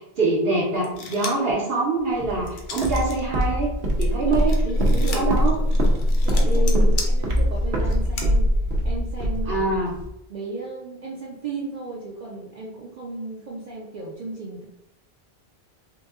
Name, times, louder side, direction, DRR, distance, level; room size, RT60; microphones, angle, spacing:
voice 1, 0.2-3.7 4.0-5.5 6.4-6.9 9.5-9.9, right 2 dB, 70° right, -4 dB, 1.0 m, -25 dB
sound 1, 0.8-1.5 2.0-3.2 3.5-8.3, left 4 dB, 60° left, 0.7 m, -36 dB
Walk footsteps, 2.2-10.1, equal, 90° right, 0.9 m, -22 dB
voice 2, 4.3-5.3 5.8-5.9 6.2-8.5 8.8-9.7 10.3-14.7, right 3 dB, 50° right, -4 dB, 0.6 m, -35 dB
3.9 x 2.6 x 2.4 m, 0.81 s
omnidirectional pair, 1.0 m